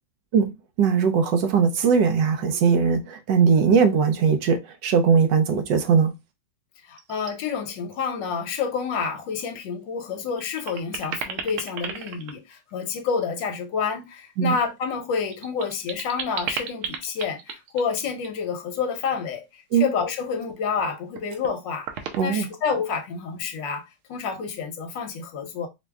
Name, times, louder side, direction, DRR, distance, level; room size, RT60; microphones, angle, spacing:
voice 1, 0.8-6.1 14.4-14.5 19.7-19.9 22.2-22.5, right 6 dB, 70° right, 1.1 m, -20 dB
voice 2, 6.9-21.9 22.2-25.7, left 6 dB, 65° left, 1.4 m, -29 dB
sound 1, 7.0-7.3 7.7-8.1 8.4-8.5 9.7-9.8 10.2-13.3 14.9-18.4 20.3-20.8 21.1-21.5 21.8-22.9, right 6 dB, 85° right, 1.6 m, -35 dB
5.1 x 2.2 x 3.4 m
omnidirectional pair, 2.3 m